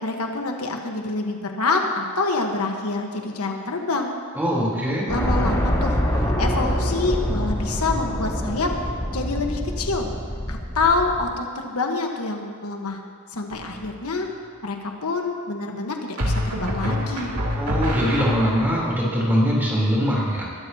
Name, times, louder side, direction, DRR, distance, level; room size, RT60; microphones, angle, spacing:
voice 1, 0.0-4.1 5.1-6.0 6.4-8.7 9.1-10.1 10.5-13.0 13.3-14.3 14.6-17.4, left 3 dB, 80° left, 2 dB, 1.3 m, -26 dB
voice 2, 4.3-5.1 17.5-20.4, equal, 10° right, -5 dB, 3.5 m, -22 dB
sound 1, 5.1-11.3, equal, 15° left, 2.1 m, -25 dB
sound 2, 13.5-14.0 16.2-18.8, equal, 90° right, 2.5 m, -26 dB
21.5 x 13.0 x 2.9 m, 2.2 s
head